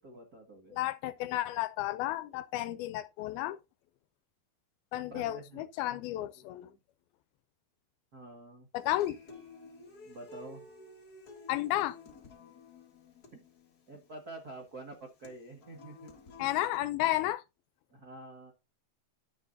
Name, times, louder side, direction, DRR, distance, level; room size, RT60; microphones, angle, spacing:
voice 1, 0.0-0.8 5.1-6.0 6.6-6.8 8.1-8.7 10.0-10.7 13.3-13.4 13.9-16.1 16.4-16.5 17.9-18.5, right 2 dB, 55° right, 1.0 m, -48 dB
voice 2, 0.7-3.6 4.9-6.7 8.7-9.2 11.5-12.0 16.4-17.4, left 15 dB, 80° left, 2.3 m, -32 dB
Human voice / Acoustic guitar, 8.8-16.8, left 3 dB, 65° left, 0.9 m, -52 dB
12.5 x 7.1 x 2.6 m
omnidirectional pair, 4.5 m